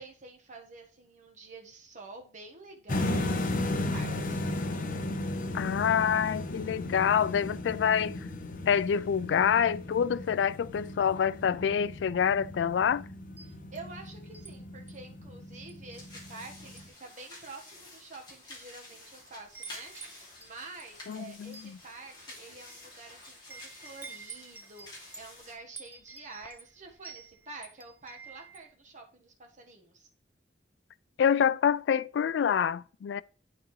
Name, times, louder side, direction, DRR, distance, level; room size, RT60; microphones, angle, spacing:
voice 1, 0.0-3.3 3.6-4.5 13.4-30.1, right 3 dB, 45° right, 1.3 m, -48 dB
sound 1, 2.9-16.9, left 1 dB, 50° left, 0.8 m, -35 dB
voice 2, 5.5-8.2 8.7-13.1 21.1-21.8 31.2-33.2, left 8 dB, 85° left, 0.3 m, -27 dB
Wind chime, 13.2-14.5 14.9-15.1 15.7-16.4 16.7-17.0 17.7-17.8 18.5-19.0 19.2-28.7, right 4 dB, 10° right, 0.4 m, -49 dB
sound 2, 15.9-25.5, left 2 dB, 25° left, 2.5 m, -50 dB
11.0 x 3.9 x 3.1 m
head